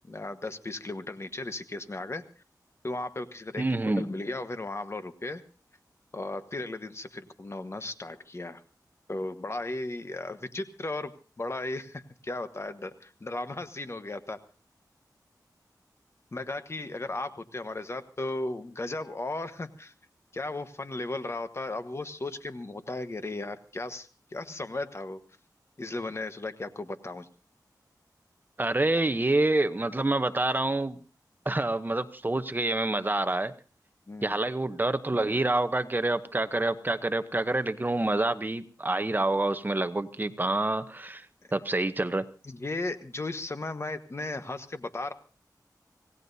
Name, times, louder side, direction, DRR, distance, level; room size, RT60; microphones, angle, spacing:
voice 1, 0.1-2.2 2.8-3.6 4.0-5.4 6.1-8.6 9.1-11.1 11.4-14.4 16.3-19.9 20.3-25.2 25.8-27.3 34.1-34.4 42.4-45.1, left 2 dB, 40° left, 9 dB, 1.2 m, -35 dB
voice 2, 3.6-4.0 28.6-31.0 31.5-33.5 34.2-41.3 41.5-42.2, right 2 dB, 25° right, 11 dB, 0.8 m, -27 dB
26.0 x 17.5 x 2.7 m, 0.35 s
wide cardioid pair, 80°, 7 cm